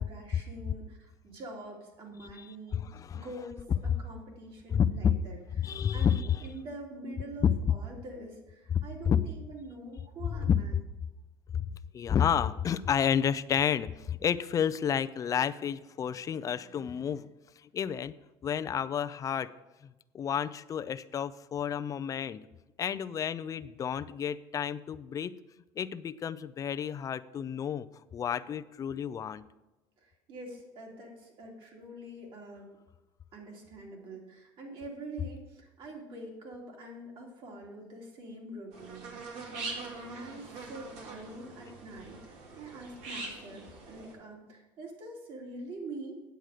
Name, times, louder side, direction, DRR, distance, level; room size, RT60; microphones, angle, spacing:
voice 1, 0.0-2.8 3.1-10.8 30.0-32.7 33.3-46.2, right 1 dB, 55° right, -1 dB, 3.1 m, -45 dB
voice 2, 2.2-3.3 4.7-5.2 5.6-6.4 7.4-7.5 8.7-9.2 10.5-10.8 11.5-11.6 11.9-17.3 17.7-18.1 18.4-19.5 20.1-22.4 22.8-25.3 25.8-27.9 28.1-29.4, left 8 dB, 30° left, 13 dB, 0.4 m, -30 dB
sound 1, 38.7-44.1, right 3 dB, 75° right, 2.3 m, -43 dB
9.0 x 8.0 x 5.0 m, 1.0 s
supercardioid pair, 110°, 11 cm